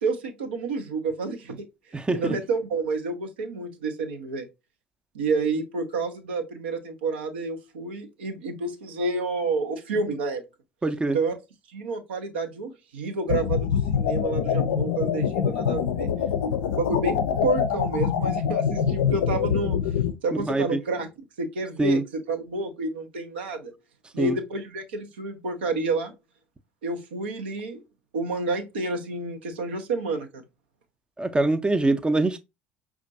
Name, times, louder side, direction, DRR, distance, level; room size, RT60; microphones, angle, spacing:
voice 1, 0.0-1.7 2.1-4.5 5.1-10.4 11.1-11.4 11.7-16.1 16.6-19.8 20.2-21.1 21.4-23.7 24.1-26.1 26.8-27.8 28.1-30.4, right 3 dB, 75° right, 0.6 m, -29 dB
voice 2, 1.9-2.3 10.8-11.2 20.5-20.8 21.8-22.0 24.2-24.4 31.2-32.4, right 2 dB, 15° right, 0.5 m, -23 dB
sound 1, 13.3-20.1, left 8 dB, 70° left, 0.4 m, -25 dB
5.1 x 2.4 x 2.6 m
figure-of-eight pair, 60°, 6 cm